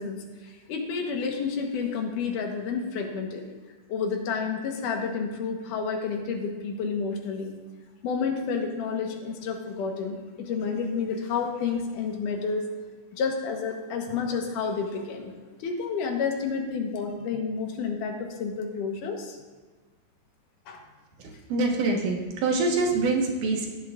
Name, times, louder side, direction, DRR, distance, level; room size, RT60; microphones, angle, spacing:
voice 1, 0.0-3.5 3.9-7.5 8.0-12.6 13.1-15.3 15.6-19.4 20.7-20.8, left 5 dB, 75° left, 3 dB, 2.6 m, -30 dB
voice 2, 21.2-23.7, right 3 dB, 70° right, 0 dB, 2.8 m, -25 dB
16.0 x 11.0 x 2.5 m, 1.4 s
omnidirectional pair, 3.9 m